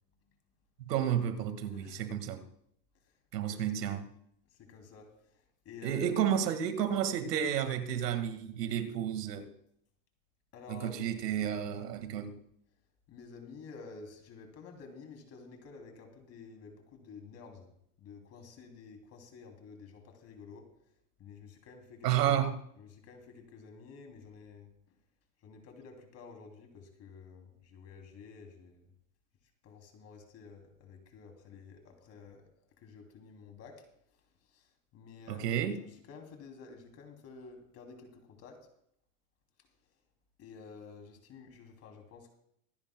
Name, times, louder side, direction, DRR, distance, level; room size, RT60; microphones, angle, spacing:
voice 1, 0.9-2.4 3.3-4.0 5.8-9.5 10.7-12.4 22.0-22.6 35.3-35.8, right 9 dB, 85° right, 1.8 m, -31 dB
voice 2, 1.7-2.1 3.4-3.9 4.6-6.2 10.5-11.1 13.1-17.7 18.0-20.7 21.2-22.4 22.8-24.7 25.4-28.9 29.6-32.5 32.8-33.9 34.4-38.7 40.4-42.3, left 5 dB, 30° left, 2.9 m, -51 dB
24.5 x 10.5 x 2.2 m
supercardioid pair, 140°, 47 cm